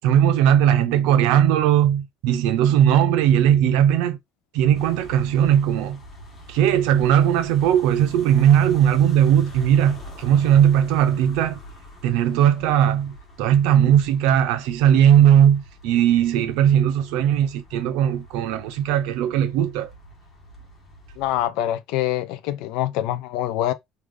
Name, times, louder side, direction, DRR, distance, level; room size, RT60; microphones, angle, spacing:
voice 1, 0.0-4.2 4.5-6.0 6.5-11.6 12.0-19.9, right 10 dB, 80° right, 0.6 m, -18 dB
sound 1, 4.7-21.5, left 1 dB, 20° left, 1.1 m, -44 dB
voice 2, 21.2-23.7, left 13 dB, 70° left, 0.5 m, -25 dB
3.2 x 2.4 x 3.6 m
cardioid pair, 175°, 0 cm